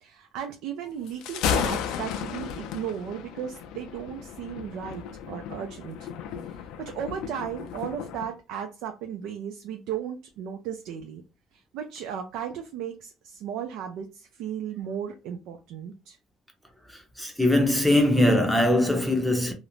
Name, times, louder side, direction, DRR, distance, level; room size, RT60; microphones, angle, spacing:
voice 1, 0.0-6.1 6.4-11.2 11.5-16.2, right 8 dB, 80° right, 0.4 m, -35 dB
Thunder, 1.1-8.3, left 8 dB, 80° left, 0.3 m, -33 dB
voice 2, 16.9-19.5, left 1 dB, ahead, 0.7 m, -22 dB
2.4 x 2.0 x 3.0 m
cardioid pair, 135°, 0 cm